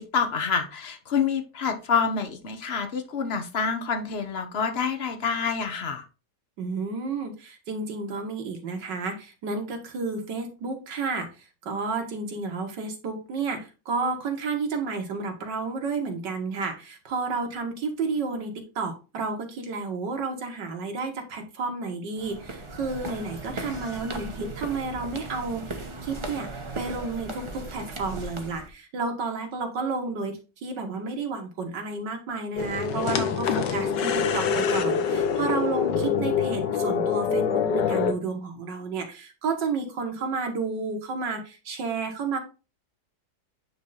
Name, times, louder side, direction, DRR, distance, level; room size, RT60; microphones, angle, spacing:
voice 1, 0.0-6.0, left 6 dB, 40° left, 7 dB, 1.1 m, -27 dB
voice 2, 6.6-42.4, right 4 dB, 85° right, 3 dB, 2.1 m, -31 dB
sound 1, 22.2-28.7, right 2 dB, 25° right, 0.6 m, -37 dB
sound 2, 32.6-38.1, left 6 dB, 85° left, 1.5 m, -25 dB
9.3 x 3.3 x 4.0 m, 0.32 s
omnidirectional pair, 1.9 m